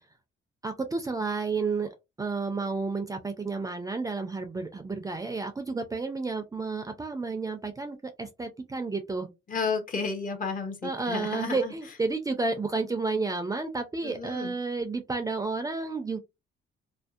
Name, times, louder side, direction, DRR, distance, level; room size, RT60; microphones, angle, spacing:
voice 1, 0.6-1.9 2.2-9.3 10.8-16.2, right 3 dB, 20° right, 0.4 m, -31 dB
voice 2, 9.5-11.7 14.0-14.5, left 4 dB, 45° left, 0.7 m, -32 dB
2.6 x 2.0 x 2.3 m
cardioid pair, 90°, 20 cm